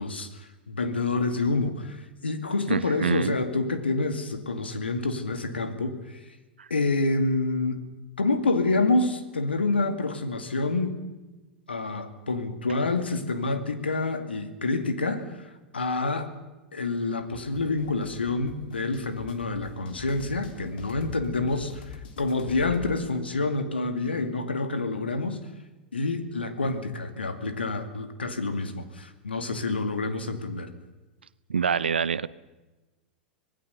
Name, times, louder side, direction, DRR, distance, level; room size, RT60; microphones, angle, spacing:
voice 1, 0.0-6.2 6.7-7.8 8.2-11.0 11.7-16.3 16.7-25.5 25.9-30.7, left 3 dB, 85° left, 8 dB, 2.3 m, -28 dB
voice 2, 2.7-3.4 6.6-6.7 31.5-32.3, right 6 dB, 80° right, 17 dB, 0.8 m, -26 dB
sound 1, 17.3-22.9, left 5 dB, 65° left, 3.4 m, -44 dB
26.0 x 19.5 x 6.9 m, 1.1 s
figure-of-eight pair, 95°, 6 cm